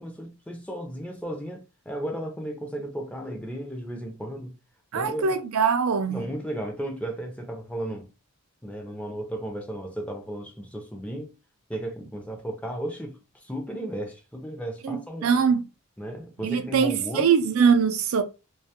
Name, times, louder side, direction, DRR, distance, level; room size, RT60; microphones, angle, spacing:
voice 1, 0.0-4.6 4.9-5.4 6.1-8.1 8.6-11.3 11.7-15.5 16.0-17.3, right 1 dB, 5° left, 0.5 m, -34 dB
voice 2, 4.9-6.2 14.8-15.7 16.4-18.2, right 6 dB, 75° right, 0.4 m, -22 dB
2.4 x 2.3 x 2.8 m
head